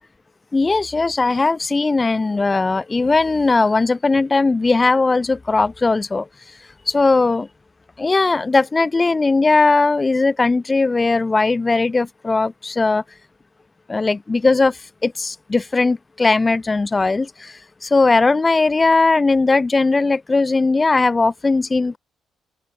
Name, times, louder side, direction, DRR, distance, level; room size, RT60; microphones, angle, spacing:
voice 1, 0.5-6.3 6.9-7.5 8.0-13.0 13.9-22.0, left 3 dB, 30° left, 1.1 m, -18 dB
open air
hypercardioid pair, 40°, 0 cm